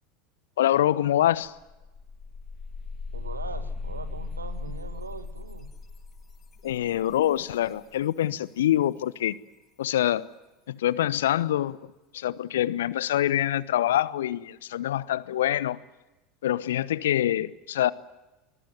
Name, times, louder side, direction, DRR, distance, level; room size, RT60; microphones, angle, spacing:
voice 1, 0.6-1.5 6.6-9.3 9.8-10.3 10.7-15.8 16.4-17.9, left 12 dB, 65° left, 19 dB, 0.9 m, -25 dB
sound 1, 1.0-1.1 1.4-8.2, left 4 dB, 30° left, 6.7 m, -38 dB
voice 2, 3.1-5.7, right 4 dB, 80° right, 12 dB, 1.8 m, -40 dB
24.5 x 21.0 x 9.5 m, 1.0 s
figure-of-eight pair, 75°, 0 cm